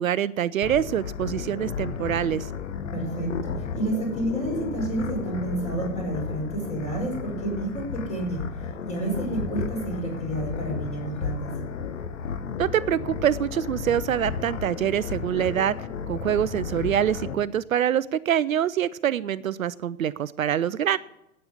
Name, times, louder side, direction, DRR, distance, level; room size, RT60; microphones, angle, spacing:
voice 1, 0.0-2.5 12.6-15.7 16.1-21.0, right 10 dB, 70° right, 17 dB, 0.5 m, -25 dB
sound 1, 0.6-17.3, left 6 dB, 60° left, 1.2 m, -33 dB
voice 2, 2.9-8.5 8.9-11.5, right 2 dB, 15° left, 0 dB, 5.3 m, -30 dB
12.5 x 8.7 x 8.2 m, 0.90 s
figure-of-eight pair, 100°, 42 cm